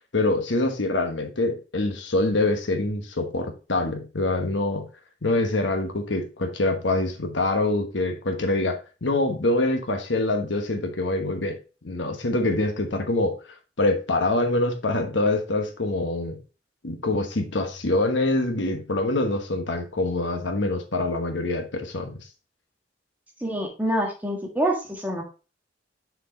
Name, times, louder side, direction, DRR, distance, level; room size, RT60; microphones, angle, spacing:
voice 1, 0.1-4.9 5.2-11.6 11.8-13.4 13.8-16.4 16.8-22.3, left 2 dB, 85° left, 1.2 m, -25 dB
voice 2, 23.4-25.2, right 1 dB, 10° right, 1.5 m, -26 dB
6.4 x 4.7 x 3.8 m
head